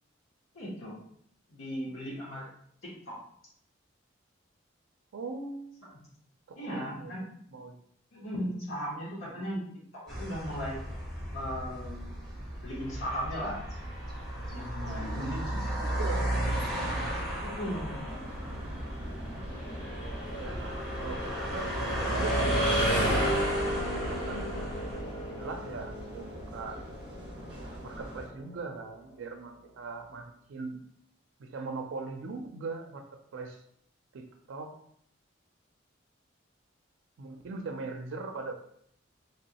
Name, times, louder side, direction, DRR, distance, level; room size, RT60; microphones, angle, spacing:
voice 1, 0.5-1.0 1.5-2.5 2.8-3.2 6.6-7.3 8.1-9.6 9.9-10.8 11.3-12.1 12.6-13.6 14.4-15.4 17.4-18.1, equal, 80° left, -6 dB, 1.1 m, -37 dB
voice 2, 5.1-5.7 6.5-7.7 9.3-9.4 15.0-15.5 15.8-16.4 18.4-18.9 20.3-24.5 25.3-26.8 27.8-30.8 31.4-33.0 33.3-33.6 34.1-34.7 37.2-38.5, right 3 dB, 80° right, 5 dB, 0.4 m, -41 dB
sound 1, 10.1-25.0, right 1 dB, ahead, 1.3 m, -35 dB
sound 2, 12.8-28.6, equal, 20° left, 0.8 m, -35 dB
sound 3, 18.1-28.3, equal, 25° right, 0.9 m, -45 dB
3.2 x 3.0 x 2.8 m, 0.68 s
head